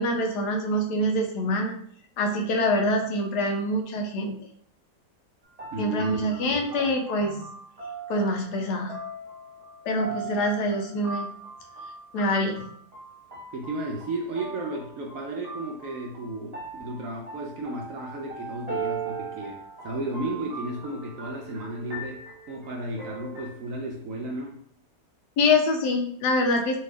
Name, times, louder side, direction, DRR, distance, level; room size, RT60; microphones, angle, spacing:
voice 1, 0.0-1.7 2.2-4.4 5.8-7.5 8.1-9.0 9.8-11.3 12.1-12.7 25.4-26.8, left 1 dB, 80° left, 3 dB, 1.2 m, -25 dB
sound 1, 5.4-23.8, right 4 dB, 30° right, 1.0 m, -39 dB
voice 2, 5.7-6.8 13.5-24.6, right 1 dB, 65° right, -1 dB, 0.8 m, -34 dB
3.3 x 2.7 x 3.3 m, 0.62 s
omnidirectional pair, 1.8 m